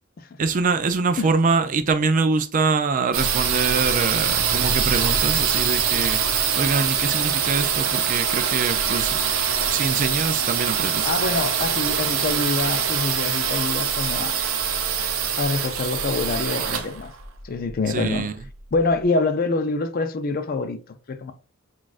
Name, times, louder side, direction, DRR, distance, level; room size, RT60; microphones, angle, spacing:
voice 1, 0.4-9.2 9.7-11.1 17.9-18.3, right 4 dB, 35° right, 0.3 m, -24 dB
sound 1, 3.1-18.8, right 7 dB, 70° right, 0.6 m, -23 dB
voice 2, 11.0-14.4 15.4-17.1 17.4-18.3 18.7-21.3, left 3 dB, 40° left, 0.4 m, -25 dB
6.1 x 2.4 x 2.4 m
head